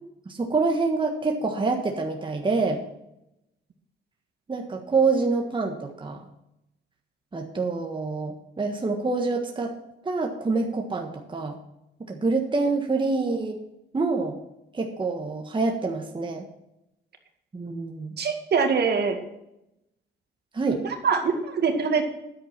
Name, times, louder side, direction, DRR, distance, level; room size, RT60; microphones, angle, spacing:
voice 1, 0.3-2.8 4.5-6.3 7.3-9.7 10.0-11.6 12.1-13.6 13.9-14.3 14.7-16.4 17.5-18.1 20.5-20.8, right 3 dB, 25° right, 3 dB, 1.4 m, -26 dB
voice 2, 18.2-19.2 20.8-22.1, right 5 dB, 55° right, 5 dB, 2.1 m, -24 dB
10.0 x 8.4 x 5.8 m, 0.86 s
cardioid pair, 90°, 20 cm